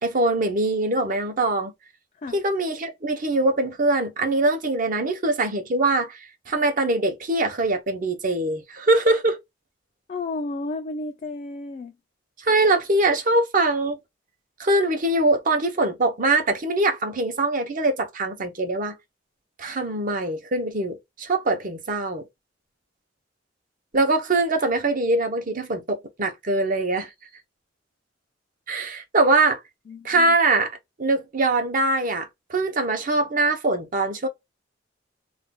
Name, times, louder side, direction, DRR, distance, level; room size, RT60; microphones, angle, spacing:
voice 1, 0.0-1.7 2.3-9.4 12.4-14.0 14.6-18.9 19.6-22.2 23.9-27.1 28.7-29.6 30.0-34.3, right 2 dB, 45° right, 0.7 m, -23 dB
voice 2, 10.1-12.0 29.9-30.3, left 2 dB, 40° left, 0.3 m, -32 dB
2.5 x 2.2 x 3.5 m
head